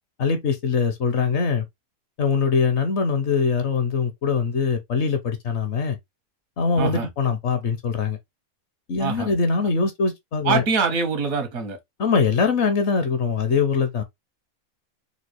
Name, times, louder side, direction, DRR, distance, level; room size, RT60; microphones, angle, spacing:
voice 1, 0.2-1.6 2.2-6.0 6.6-8.2 8.9-10.6 12.0-14.0, left 5 dB, 60° left, 0.8 m, -22 dB
voice 2, 6.8-7.1 9.0-9.3 10.4-11.8, right 5 dB, 75° right, 1.5 m, -24 dB
3.8 x 2.3 x 2.9 m
omnidirectional pair, 1.5 m